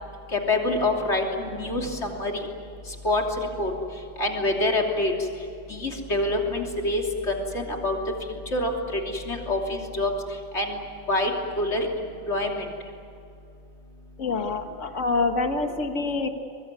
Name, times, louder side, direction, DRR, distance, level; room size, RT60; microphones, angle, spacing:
voice 1, 0.3-2.3 3.0-3.2 3.6-3.7 4.2-5.1 5.7-8.0 8.5-10.1 10.5-10.8 11.1-11.3 11.6-11.9 12.3-12.6, left 2 dB, 65° left, 1 dB, 3.4 m, -26 dB
voice 2, 14.2-16.3, left 3 dB, 85° left, 6 dB, 1.9 m, -26 dB
24.0 x 22.0 x 9.6 m, 2.6 s
omnidirectional pair, 1.3 m